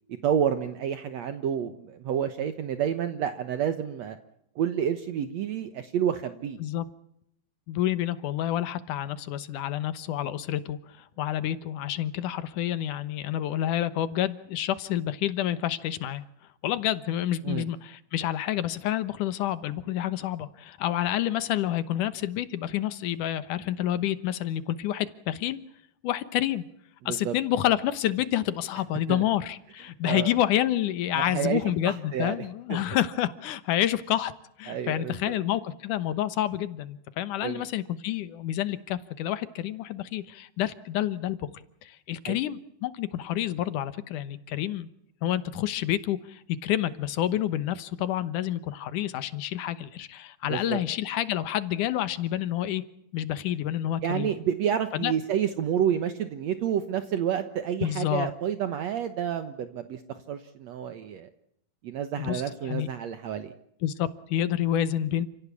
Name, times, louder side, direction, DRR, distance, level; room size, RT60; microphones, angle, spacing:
voice 1, 0.2-4.2 4.6-6.6 17.4-17.7 27.0-27.4 29.1-29.2 30.0-30.3 31.1-32.3 32.7-32.8 34.7-35.3 37.4-37.7 42.3-42.4 50.5-50.8 54.0-60.0 60.3-61.3 61.8-63.5, right 9 dB, 65° right, 9 dB, 2.2 m, -29 dB
voice 2, 7.7-16.2 16.6-25.6 26.0-26.6 27.1-34.3 34.6-41.4 41.8-44.9 45.2-52.8 53.1-54.3 54.9-55.1 57.8-58.3 62.2-62.9 63.8-65.3, left 12 dB, 85° left, 14 dB, 2.7 m, -28 dB
29.5 x 17.0 x 8.5 m, 0.75 s
omnidirectional pair, 3.5 m